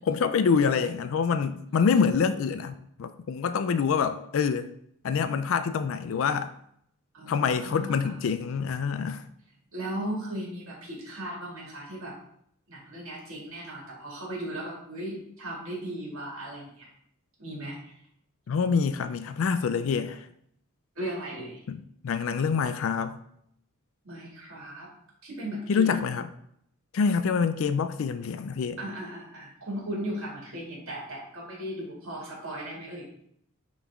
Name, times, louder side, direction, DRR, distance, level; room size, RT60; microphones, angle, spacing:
voice 1, 0.0-2.7 3.0-4.7 5.0-6.5 7.3-9.2 18.5-20.3 21.7-23.2 25.7-26.3 26.9-28.8, left 6 dB, 65° left, 11 dB, 0.3 m, -26 dB
voice 2, 7.1-8.2 9.7-12.1 12.7-16.9 17.4-17.9 21.0-21.6 24.0-24.9 25.2-26.1 28.8-33.1, right 1 dB, 70° right, -3 dB, 2.3 m, -37 dB
9.0 x 3.2 x 3.5 m, 0.71 s
head